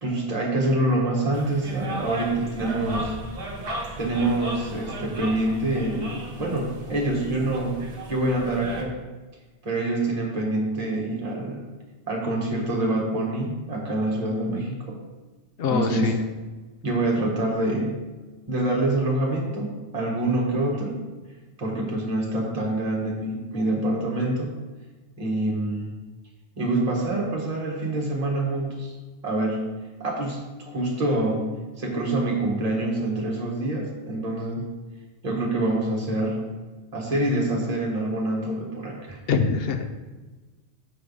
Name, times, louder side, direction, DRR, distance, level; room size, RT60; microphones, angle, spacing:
voice 1, 0.0-3.1 4.0-7.8 8.1-8.9 9.6-11.6 12.1-14.9 15.7-16.1 16.8-18.0 18.5-21.0 21.6-24.5 25.2-25.9 26.6-28.9 29.2-29.6 30.0-31.4 31.8-34.7 35.2-36.4 36.9-39.2, right 1 dB, 35° right, -2 dB, 1.3 m, -26 dB
sound 1, 1.3-8.8, right 1 dB, 55° right, 1.1 m, -35 dB
voice 2, 15.6-16.2 39.3-39.9, left 5 dB, 65° left, 7 dB, 0.7 m, -24 dB
6.9 x 3.3 x 5.3 m, 1.2 s
omnidirectional pair, 1.2 m